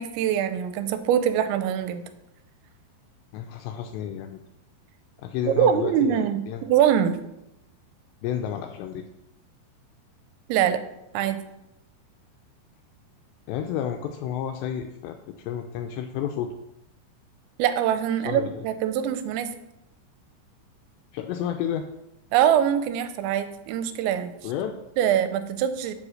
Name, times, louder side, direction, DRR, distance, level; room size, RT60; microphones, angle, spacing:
voice 1, 0.0-2.0 5.5-7.2 10.5-10.8 11.1-11.4 17.6-19.5 22.3-24.3 25.0-25.9, right 9 dB, 80° right, 10 dB, 2.8 m, -23 dB
voice 2, 3.3-4.4 5.2-6.7 8.2-9.0 13.5-16.5 18.2-18.6 21.1-21.8 24.4-24.8, left 9 dB, 85° left, 5 dB, 2.5 m, -31 dB
7.5 x 6.2 x 6.4 m, 0.89 s
omnidirectional pair, 5.5 m